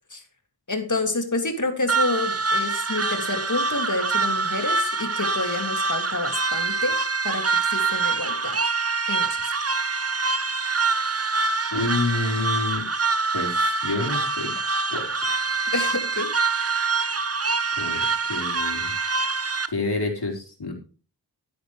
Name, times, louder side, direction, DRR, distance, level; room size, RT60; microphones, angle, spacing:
voice 1, 0.7-7.0 7.2-8.6 9.1-9.3 15.7-16.3, left 2 dB, 45° left, 5 dB, 2.6 m, -28 dB
sound 1, 1.9-19.7, right 4 dB, 35° right, 0.9 m, -25 dB
voice 2, 11.7-12.8 13.3-13.6 13.8-14.5 14.9-15.1 17.8-18.0 18.3-18.9 19.7-20.7, left 2 dB, 65° left, 1 dB, 4.6 m, -27 dB
12.5 x 10.5 x 3.3 m, 0.36 s
wide cardioid pair, 65°, 41 cm